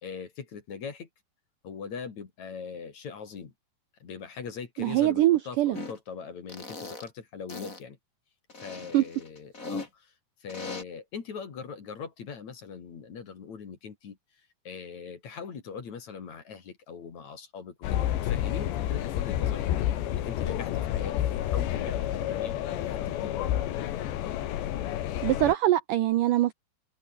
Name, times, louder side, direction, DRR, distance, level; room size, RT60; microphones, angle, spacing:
voice 1, 0.0-1.1 1.6-3.5 4.0-8.0 8.6-10.1 10.4-14.2 14.7-19.6 20.1-22.6 22.8-23.3, left 6 dB, 45° left, 3.8 m, -41 dB
voice 2, 4.8-5.8 8.9-9.0 25.2-26.5, right 14 dB, 85° right, 1.9 m, -23 dB
sound 1, 5.7-6.0 6.5-7.1 7.5-7.8 8.5-9.9 10.5-10.8, left 3 dB, 20° left, 3.7 m, -39 dB
sound 2, 17.8-25.5, left 12 dB, 90° left, 4.1 m, -29 dB
omnidirectional pair, 4.9 m